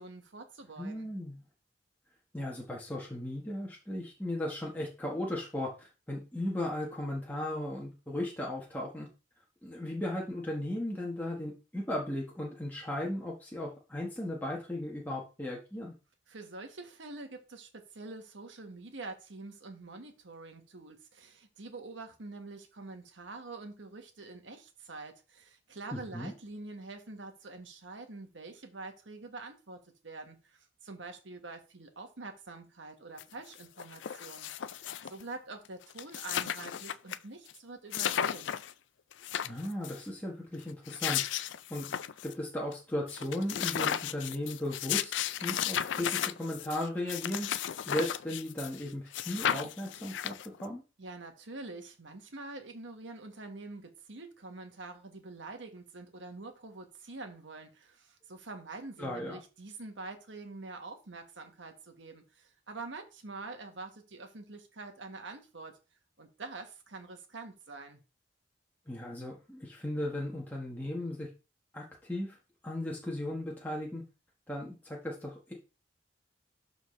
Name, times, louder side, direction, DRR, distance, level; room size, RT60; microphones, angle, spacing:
voice 1, 0.0-1.1 16.3-38.5 51.0-65.7 66.2-68.0, right 3 dB, 85° right, 1.5 m, -46 dB
voice 2, 0.8-1.4 2.3-9.1 9.6-15.9 25.9-26.3 39.4-41.2 41.7-41.9 42.2-47.5 47.9-50.3 50.6-50.8 59.0-59.4 68.9-71.3 71.7-72.4 72.6-74.0 74.5-75.5, left 1 dB, 10° left, 1.3 m, -36 dB
sound 1, 33.2-33.3 33.5-35.2 35.6-35.7 35.9-37.2 37.5-37.6 37.9-38.7 39.1-40.0 40.7-42.3 42.7-42.8 43.1-48.8 49.1-50.6, left 10 dB, 80° left, 0.4 m, -34 dB
12.0 x 4.0 x 3.2 m
head